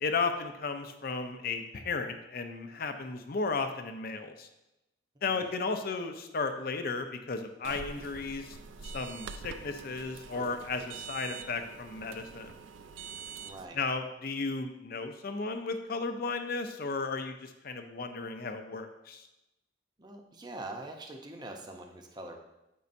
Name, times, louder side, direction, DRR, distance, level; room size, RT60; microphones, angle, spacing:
voice 1, 0.0-4.5 5.2-8.6 8.8-12.5 13.7-19.3, left 4 dB, 50° left, 7 dB, 0.6 m, -34 dB
sound 1, 7.6-13.7, right 5 dB, 85° right, 0.4 m, -45 dB
voice 2, 13.4-13.8 20.0-22.4, right 2 dB, 25° right, 3 dB, 0.6 m, -44 dB
8.1 x 5.4 x 2.6 m, 0.94 s
head